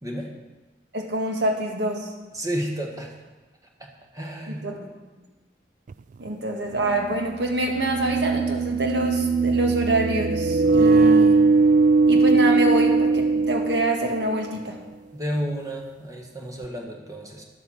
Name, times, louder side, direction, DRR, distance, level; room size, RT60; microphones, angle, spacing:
voice 1, 0.0-0.3 2.3-3.1 3.8-4.9 15.1-17.4, equal, 20° right, 1 dB, 1.5 m, -32 dB
voice 2, 0.9-2.1 4.5-4.8 6.2-11.4 12.1-14.8, right 1 dB, 70° right, 2 dB, 1.9 m, -26 dB
sound 1, 5.9-6.0 7.5-14.3, right 4 dB, 45° right, 0.3 m, -20 dB
10.5 x 7.9 x 7.1 m, 1.2 s
head